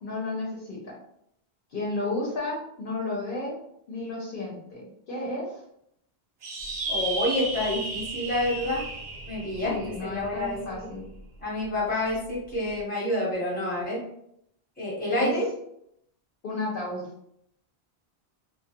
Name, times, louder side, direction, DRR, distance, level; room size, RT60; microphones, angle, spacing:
voice 1, 0.0-0.9 1.7-3.6 3.9-5.6 9.6-11.0 15.1-15.3 16.4-17.0, left 2 dB, 60° left, -4 dB, 0.8 m, -32 dB
sound 1, 6.4-11.2, right 2 dB, 60° right, 0.7 m, -34 dB
voice 2, 6.9-8.8 9.3-9.7 10.0-10.9 11.4-14.0 14.8-15.5, left 1 dB, 10° left, -6 dB, 0.8 m, -28 dB
2.3 x 2.0 x 2.7 m, 0.75 s
omnidirectional pair, 1.1 m